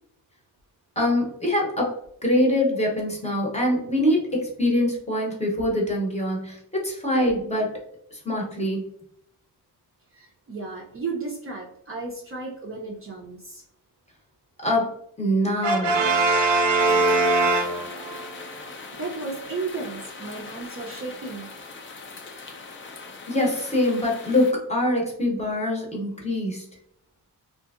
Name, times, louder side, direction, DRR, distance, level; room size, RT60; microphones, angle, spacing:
voice 1, 1.0-7.7 8.1-8.8 14.6-14.9 15.2-15.9 23.3-26.7, left 1 dB, 15° left, -2 dB, 0.7 m, -24 dB
voice 2, 10.1-13.6 18.9-21.5, right 4 dB, 35° right, -2 dB, 0.5 m, -34 dB
Brass instrument, 15.6-18.3, right 2 dB, 85° right, 0.6 m, -21 dB
sound 1, 16.8-24.5, left 4 dB, 30° left, 0.4 m, -41 dB
2.7 x 2.5 x 2.3 m, 0.69 s
wide cardioid pair, 135°, 41 cm